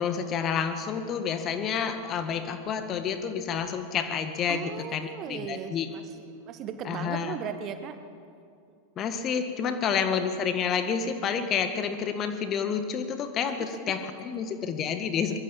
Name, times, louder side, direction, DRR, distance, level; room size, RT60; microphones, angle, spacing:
voice 1, 0.0-5.9 6.8-7.3 9.0-15.4, left 7 dB, 30° left, 8 dB, 1.8 m, -29 dB
voice 2, 4.5-8.0 8.7-8.8 9.6-9.8 13.6-14.0, right 7 dB, 35° right, 9 dB, 1.6 m, -38 dB
23.5 x 22.5 x 7.3 m, 2.5 s
figure-of-eight pair, 90°, 0 cm